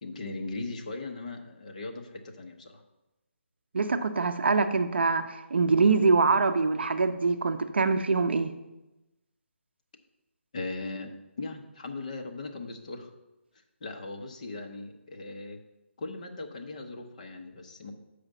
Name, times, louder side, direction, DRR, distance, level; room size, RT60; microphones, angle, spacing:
voice 1, 0.0-2.0 2.4-2.7 10.5-11.1 11.4-13.1 13.8-15.6 16.0-17.9, left 3 dB, 35° left, 3 dB, 0.9 m, -38 dB
voice 2, 3.7-8.5, right 4 dB, 55° right, 9 dB, 0.6 m, -24 dB
7.1 x 5.0 x 6.6 m, 0.99 s
hypercardioid pair, 170°, 7 cm